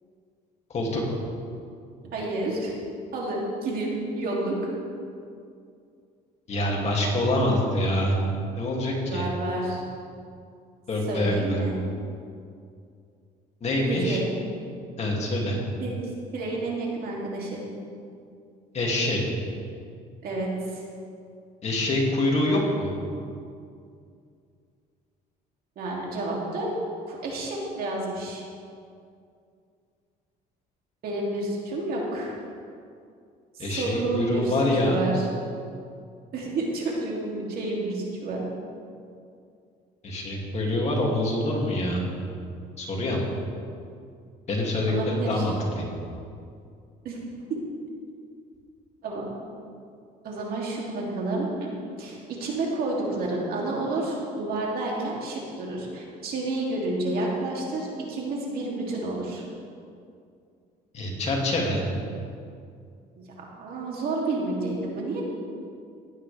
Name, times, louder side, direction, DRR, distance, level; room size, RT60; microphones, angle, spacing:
voice 1, 0.7-1.0 6.5-8.2 8.6-9.3 10.9-11.6 13.6-14.2 15.0-15.6 18.7-19.2 21.6-22.9 33.6-35.0 40.0-42.0 42.8-43.2 44.5-45.8 60.9-61.8, left 1 dB, 40° left, -2 dB, 2.6 m, -25 dB
voice 2, 2.1-2.7 3.1-4.6 9.1-9.8 11.1-11.8 13.9-14.3 15.8-16.0 16.3-17.6 20.2-20.8 25.8-26.7 27.1-28.4 31.0-32.3 33.5-34.5 34.8-35.3 36.3-38.4 44.9-45.5 47.0-47.2 49.0-49.2 50.2-51.7 52.0-59.4 63.2-63.3 63.6-65.2, right 2 dB, 65° right, -3 dB, 2.9 m, -30 dB
15.5 x 10.0 x 3.5 m, 2.4 s
cardioid pair, 110°, 17 cm